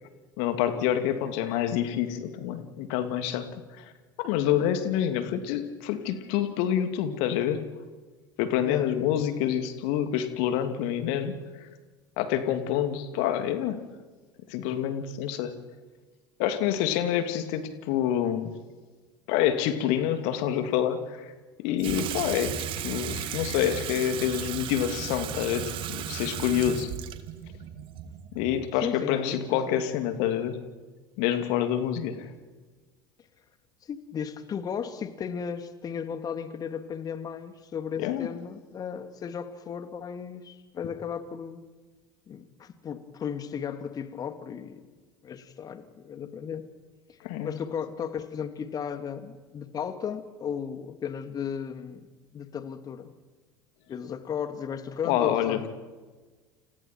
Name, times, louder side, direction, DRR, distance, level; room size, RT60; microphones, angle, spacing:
voice 1, 0.4-3.5 3.7-3.9 4.2-7.6 8.4-11.4 12.2-13.8 14.5-15.5 16.4-18.5 19.3-21.3 21.6-26.9 28.3-30.6 31.2-32.3 38.0-38.3 47.2-47.5 55.0-55.7, left 10 dB, 55° left, 8 dB, 2.7 m, -27 dB
Water tap faucet / Sink (filling or washing), 21.8-28.8, right 10 dB, 45° right, 2.0 m, -35 dB
voice 2, 28.8-29.8 33.8-41.6 42.3-44.8 45.2-46.7 47.4-52.1 52.3-53.1 53.9-55.7, left 7 dB, 35° left, 10 dB, 2.3 m, -35 dB
30.0 x 29.5 x 4.6 m, 1.3 s
figure-of-eight pair, 70°, 12 cm